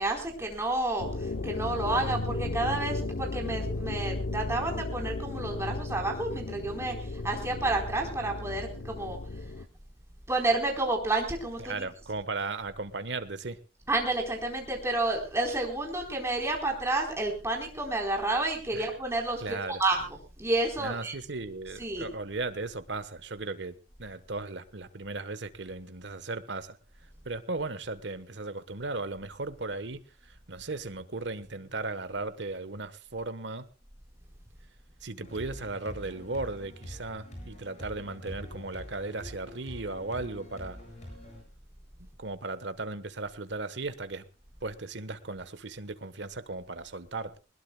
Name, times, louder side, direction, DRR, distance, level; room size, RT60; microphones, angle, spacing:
voice 1, 0.0-9.2 10.3-11.7 13.9-20.1 20.4-21.1 21.8-22.1, right 2 dB, 15° right, 1 dB, 4.2 m, -30 dB
sound 1, 1.0-9.6, left 2 dB, 75° left, 0.8 m, -35 dB
voice 2, 11.6-13.6 18.7-18.9 19.4-19.8 20.8-33.7 35.0-40.8 42.2-44.2 44.6-47.4, right 3 dB, 75° right, 12 dB, 1.3 m, -36 dB
sound 2, 35.2-41.4, equal, 40° left, 7.8 m, -45 dB
21.0 x 20.5 x 2.3 m, 0.32 s
head